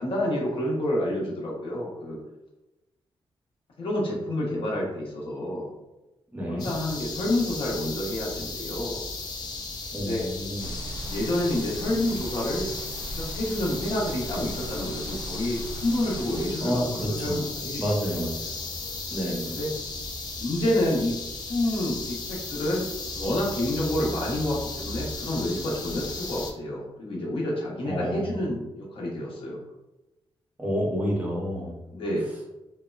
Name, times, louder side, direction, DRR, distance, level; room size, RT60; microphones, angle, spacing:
voice 1, 0.0-2.2 3.8-5.7 6.5-9.0 10.0-10.3 11.1-12.7 13.2-17.8 19.5-19.7 20.4-21.1 21.5-29.6 31.9-32.3, left 1 dB, 60° left, -4 dB, 0.7 m, -28 dB
voice 2, 6.3-6.7 9.9-10.7 16.6-17.4 17.8-18.6 19.1-19.5 27.8-28.4 30.6-31.7, equal, 15° right, -3 dB, 0.5 m, -29 dB
sound 1, 6.6-26.5, left 3 dB, 45° left, 0.4 m, -36 dB
sound 2, 10.6-16.5, right 2 dB, 70° right, 0.4 m, -39 dB
2.9 x 2.1 x 2.3 m, 0.99 s
wide cardioid pair, 160°, 10 cm